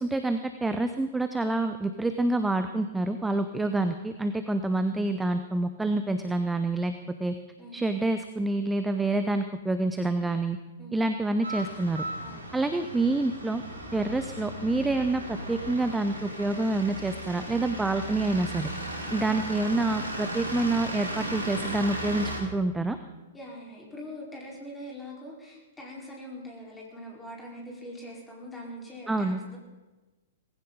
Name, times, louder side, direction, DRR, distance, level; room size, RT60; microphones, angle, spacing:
voice 1, 0.0-6.9 7.2-7.3 7.7-10.6 10.9-12.0 12.5-13.6 13.9-18.7 19.1-23.0 29.1-29.4, right 2 dB, 5° right, 9 dB, 0.7 m, -27 dB
sound 1, 11.4-22.4, right 1 dB, 75° right, 3.2 m, -36 dB
voice 2, 12.2-12.6 23.3-29.6, equal, 10° left, -3 dB, 4.8 m, -43 dB
19.0 x 16.0 x 4.1 m, 1.1 s
figure-of-eight pair, 105°, 0 cm